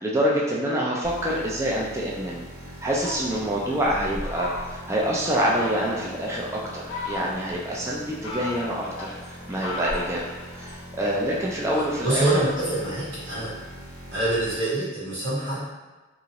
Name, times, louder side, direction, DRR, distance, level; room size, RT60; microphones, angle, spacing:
voice 1, 0.0-2.4 2.8-10.2 10.6-12.4, equal, 15° right, -4 dB, 0.3 m, -26 dB
sound 1, 1.0-14.6, equal, 30° left, 0.6 m, -42 dB
Fowl, 2.9-5.0 5.4-6.1 6.6-7.6 8.0-10.8, left 2 dB, 85° left, 0.6 m, -35 dB
voice 2, 11.7-13.6 14.1-15.6, right 1 dB, 65° right, -9 dB, 1.3 m, -25 dB
2.8 x 2.5 x 2.9 m, 1.2 s
head